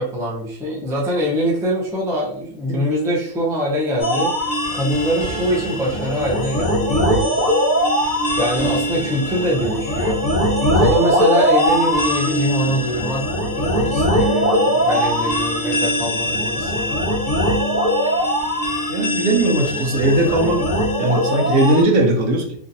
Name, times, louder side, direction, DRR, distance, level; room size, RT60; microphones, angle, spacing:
voice 1, 0.0-4.3 4.7-7.4 8.3-10.2 10.7-17.0, equal, 5° right, -4 dB, 0.3 m, -23 dB
sound 1, 4.0-21.8, equal, 50° left, 0.9 m, -20 dB
voice 2, 18.9-20.6 21.0-22.5, right 2 dB, 80° right, 2 dB, 1.1 m, -18 dB
2.9 x 2.7 x 2.6 m, 0.62 s
omnidirectional pair, 1.4 m